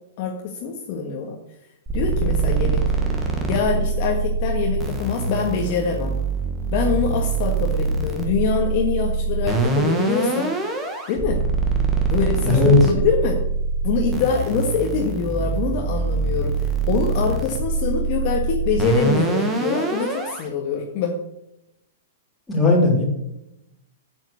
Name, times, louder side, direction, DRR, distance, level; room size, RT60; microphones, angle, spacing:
voice 1, 0.2-1.4 1.9-2.8 3.5-6.1 6.7-10.5 11.1-11.4 12.1-13.4 13.8-21.2, left 5 dB, 35° left, 0 dB, 1.6 m, -24 dB
sound 1, 1.9-20.4, right 4 dB, 10° right, 1.6 m, -24 dB
voice 2, 12.4-12.8 22.5-23.0, left 3 dB, 10° left, -5 dB, 3.7 m, -16 dB
8.9 x 8.0 x 6.4 m, 0.85 s
hypercardioid pair, 170°, 0 cm